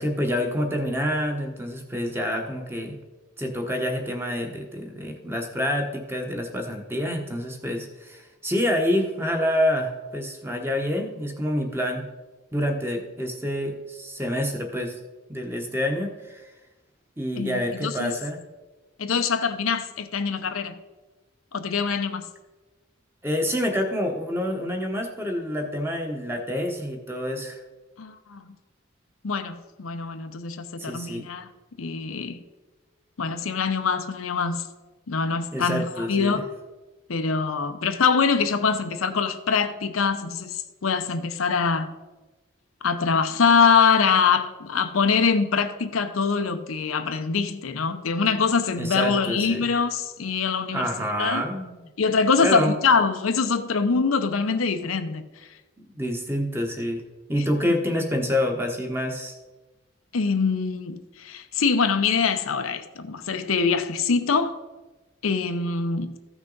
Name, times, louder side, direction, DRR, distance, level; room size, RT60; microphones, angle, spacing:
voice 1, 0.0-2.9 3.4-12.0 12.5-15.0 15.3-16.5 17.2-18.4 23.2-27.6 30.8-31.3 35.5-36.4 48.8-49.7 50.7-51.9 52.4-52.7 55.8-57.0 57.3-59.3, equal, 10° right, 1.0 m, -27 dB
voice 2, 17.4-18.1 19.0-20.8 21.5-22.2 28.0-28.5 29.2-31.5 31.8-32.4 33.2-34.7 35.1-36.5 37.1-41.9 42.8-50.9 51.2-51.4 52.0-55.3 60.1-64.6 65.2-66.2, left 5 dB, 90° left, 0.7 m, -24 dB
14.5 x 6.0 x 3.9 m
head